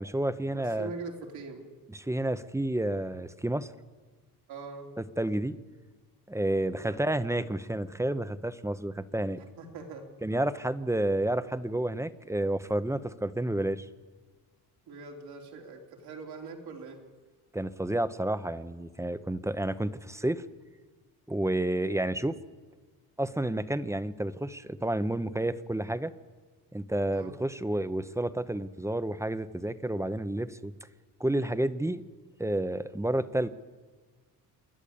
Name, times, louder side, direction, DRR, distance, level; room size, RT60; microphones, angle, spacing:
voice 1, 0.0-0.9 1.9-3.7 5.2-5.6 6.3-9.4 10.2-13.9 17.5-20.4 21.3-22.4 23.2-26.1 26.7-30.7 31.2-32.0 32.4-33.5, right 1 dB, 5° right, 13 dB, 0.9 m, -30 dB
voice 2, 0.5-1.6 4.5-4.9 6.8-7.1 9.4-10.1 14.9-17.0 27.1-27.4, right 4 dB, 75° right, 2 dB, 3.8 m, -42 dB
27.5 x 11.0 x 8.7 m, 1.4 s
cardioid pair, 85°, 39 cm